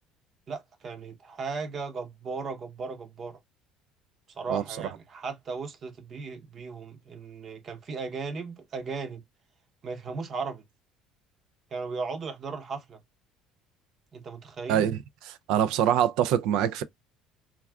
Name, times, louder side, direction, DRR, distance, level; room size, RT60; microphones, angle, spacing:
voice 1, 0.5-3.4 4.4-9.2 9.8-10.6 11.7-13.0 14.1-14.9, right 4 dB, 45° right, 0.8 m, -36 dB
voice 2, 14.7-15.0 15.2-16.8, right 10 dB, 70° right, 0.4 m, -24 dB
2.4 x 2.3 x 3.3 m
supercardioid pair, 80°, 0 cm